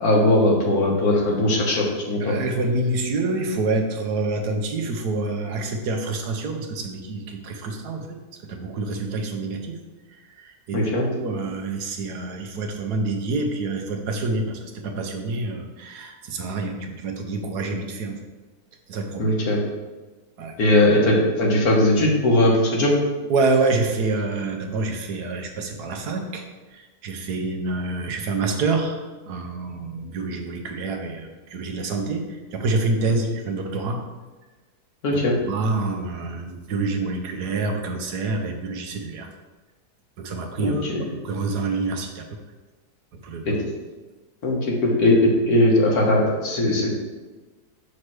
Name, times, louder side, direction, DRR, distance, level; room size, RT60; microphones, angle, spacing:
voice 1, 0.0-2.4 10.7-11.1 19.2-19.6 20.6-23.0 33.1-33.2 35.0-35.3 40.6-41.1 43.5-43.6 44.4-46.9, left 1 dB, 70° left, -2 dB, 1.7 m, -19 dB
voice 2, 2.2-8.1 8.5-9.8 10.4-14.6 14.8-18.2 18.9-19.3 20.4-20.5 23.3-26.4 26.7-29.0 29.3-34.0 35.5-39.3 40.2-40.9 41.2-42.2 43.2-43.6, right 3 dB, 80° right, 4 dB, 1.4 m, -27 dB
6.4 x 3.3 x 6.0 m, 1.3 s
omnidirectional pair, 1.7 m